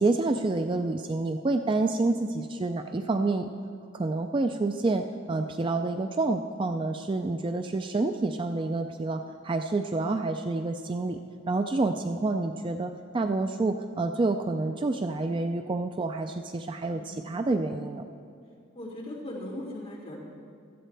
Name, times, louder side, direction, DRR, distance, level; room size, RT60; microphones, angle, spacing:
voice 1, 0.0-3.5 3.9-11.2 11.5-18.1, right 2 dB, 25° right, 6 dB, 0.3 m, -28 dB
voice 2, 16.9-17.2 18.7-20.2, left 1 dB, 30° left, -6 dB, 2.8 m, -39 dB
16.5 x 13.0 x 3.4 m, 2.3 s
head